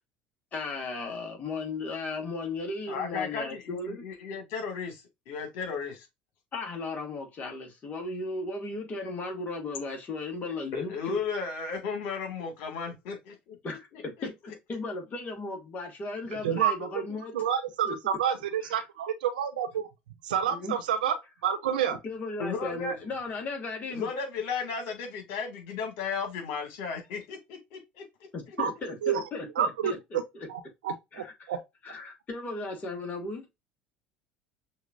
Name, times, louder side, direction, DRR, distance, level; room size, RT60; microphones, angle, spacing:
voice 1, 0.5-4.0 6.5-11.2 13.6-17.3 17.8-18.0 18.7-18.8 20.5-20.7 22.0-24.1 28.3-30.5 31.1-31.3 31.8-33.5, left 3 dB, 35° left, 2.2 m, -36 dB
voice 2, 2.9-6.0 10.7-13.6 13.9-14.0 22.4-22.9 23.9-28.0, left 5 dB, 65° left, 2.2 m, -34 dB
voice 3, 16.4-16.9 17.3-19.9 20.2-22.0 28.6-28.7 29.0-29.2 29.6-30.2 30.5-31.6, right 9 dB, 85° right, 0.8 m, -29 dB
6.3 x 3.0 x 2.5 m
hypercardioid pair, 75°, 5 cm